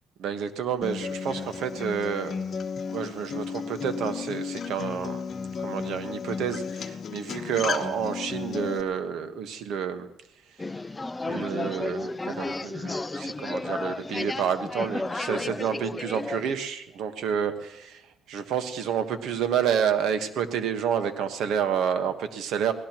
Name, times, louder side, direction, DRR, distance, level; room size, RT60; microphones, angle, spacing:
voice 1, 0.2-2.4 2.9-5.2 5.6-10.1 11.2-18.0 18.3-22.7, right 8 dB, 80° right, 8 dB, 1.3 m, -29 dB
Acoustic guitar, 0.8-8.8, left 6 dB, 55° left, 1.1 m, -34 dB
sound 1, 10.6-16.5, left 2 dB, 20° left, 0.5 m, -33 dB
24.0 x 17.5 x 3.0 m, 0.90 s
cardioid pair, 90°, 0 cm